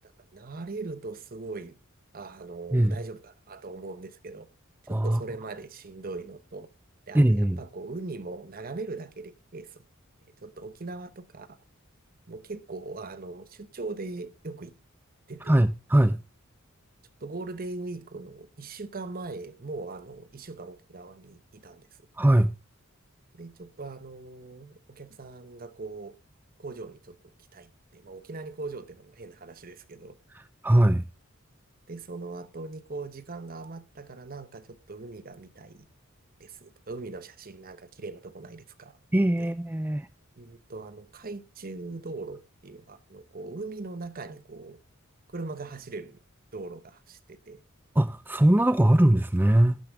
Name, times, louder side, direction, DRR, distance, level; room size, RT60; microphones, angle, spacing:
voice 1, 0.0-1.8 2.1-4.5 4.9-6.7 7.1-9.8 10.4-11.6 12.3-14.7 15.3-15.6 17.2-21.9 23.3-26.1 26.6-30.2 31.9-35.9 36.4-39.0 39.4-39.5 40.4-44.8 45.3-46.2 46.5-47.6, right 3 dB, 45° right, 0.9 m, -40 dB
voice 2, 4.9-5.2 7.1-7.6 15.5-16.2 22.2-22.5 30.6-31.0 39.1-40.1 48.0-49.8, right 1 dB, 10° right, 0.5 m, -21 dB
12.0 x 10.5 x 3.5 m
head